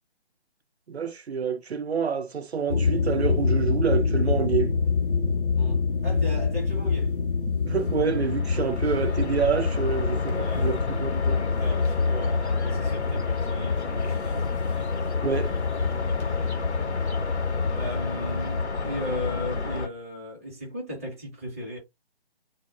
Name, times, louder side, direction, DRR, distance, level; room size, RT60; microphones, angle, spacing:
voice 1, 0.9-4.7 7.5-11.4 15.2-15.6, right 6 dB, 75° right, 0.5 m, -27 dB
sound 1, 2.7-18.6, left 5 dB, 55° left, 0.6 m, -27 dB
voice 2, 5.5-7.2 8.6-9.2 10.3-10.7 11.6-14.8 16.0-17.0 17.7-21.8, left 1 dB, 15° right, 0.6 m, -37 dB
sound 2, 7.7-19.9, left 3 dB, 90° left, 0.7 m, -30 dB
2.1 x 2.0 x 2.9 m
figure-of-eight pair, 150°, 32 cm